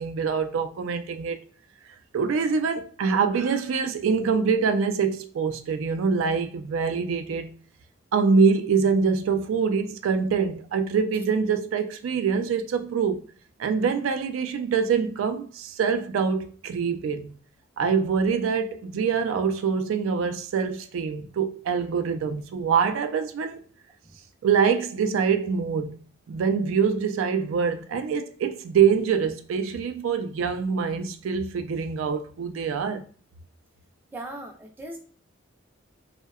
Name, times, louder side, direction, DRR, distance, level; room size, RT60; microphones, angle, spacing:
voice 1, 0.0-1.4 2.1-7.5 8.1-13.2 13.6-17.3 17.8-23.6 24.4-26.0 26.3-33.0, right 6 dB, 85° right, 0.3 m, -24 dB
voice 2, 34.1-35.0, right 1 dB, 10° right, 0.4 m, -38 dB
2.6 x 2.1 x 2.3 m
head